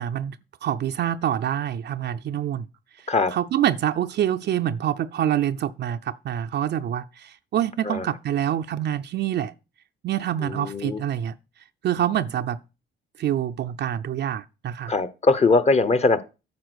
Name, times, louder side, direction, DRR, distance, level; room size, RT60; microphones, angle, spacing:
voice 1, 0.0-2.7 3.0-9.5 10.0-11.4 11.8-12.6 13.2-14.9, right 10 dB, 60° right, 0.5 m, -26 dB
voice 2, 10.4-11.0 14.9-16.2, left 3 dB, 35° left, 0.9 m, -21 dB
9.5 x 4.3 x 6.3 m
cardioid pair, 90°, 20 cm